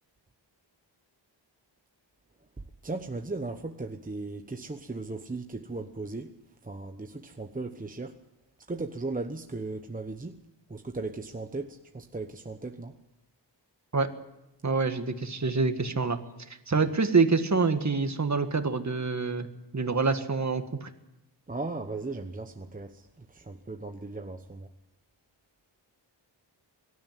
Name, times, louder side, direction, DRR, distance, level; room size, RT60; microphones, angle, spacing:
voice 1, 2.8-6.3 6.6-8.1 8.7-10.3 10.7-12.9 21.5-23.0 23.3-24.7, right 3 dB, 20° right, 5 dB, 1.0 m, -37 dB
voice 2, 14.6-16.2 16.7-19.5 19.7-20.9, right 4 dB, 40° right, 7 dB, 1.8 m, -26 dB
24.0 x 12.5 x 9.3 m, 0.91 s
wide cardioid pair, 100°, 44 cm